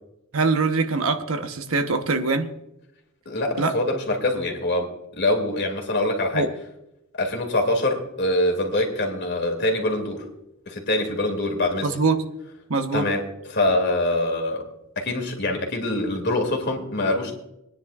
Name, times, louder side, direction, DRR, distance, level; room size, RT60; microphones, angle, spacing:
voice 1, 0.3-2.5 3.6-3.7 6.3-6.5 11.8-12.2 12.7-13.1, right 3 dB, 80° right, 7 dB, 1.0 m, -23 dB
voice 2, 3.3-6.5 7.1-10.3 10.7-11.9 12.9-14.7 15.0-17.3, left 1 dB, 55° left, 2 dB, 2.4 m, -24 dB
25.5 x 10.0 x 2.4 m, 0.84 s
head